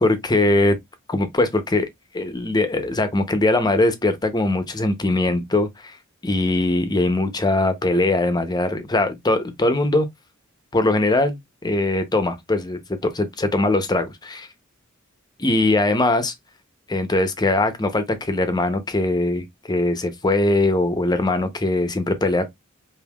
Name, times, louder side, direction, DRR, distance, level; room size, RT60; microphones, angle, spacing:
voice 1, 0.0-0.8 1.1-1.9 2.1-6.0 6.2-10.1 10.7-14.5 15.4-16.3 16.9-22.5, left 2 dB, 20° left, 0.7 m, -21 dB
5.3 x 2.7 x 2.3 m
head